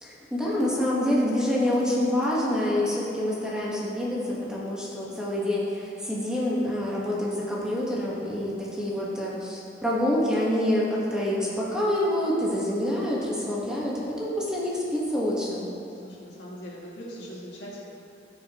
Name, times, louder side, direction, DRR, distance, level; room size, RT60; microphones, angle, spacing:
voice 1, 0.0-13.9 14.2-15.7, left 1 dB, 5° right, -6 dB, 1.3 m, -27 dB
voice 2, 8.0-8.5 15.9-17.8, equal, 75° left, -6 dB, 2.2 m, -42 dB
15.5 x 6.5 x 3.0 m, 2.7 s
head